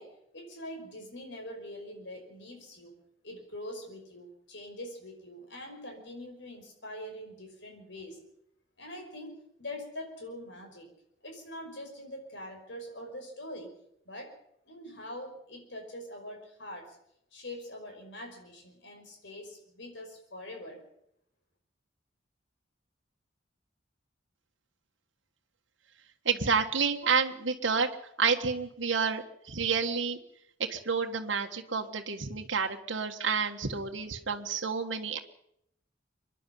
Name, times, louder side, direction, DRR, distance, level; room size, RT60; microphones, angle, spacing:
voice 1, 0.0-2.9 3.2-8.2 8.8-10.9 11.2-13.7 14.1-14.4 14.7-17.0 17.3-20.8, left 1 dB, 65° left, 3 dB, 5.4 m, -44 dB
voice 2, 26.2-27.9 28.2-30.2 30.7-35.2, right 5 dB, 75° right, 3 dB, 1.6 m, -29 dB
25.0 x 11.0 x 10.0 m, 0.75 s
head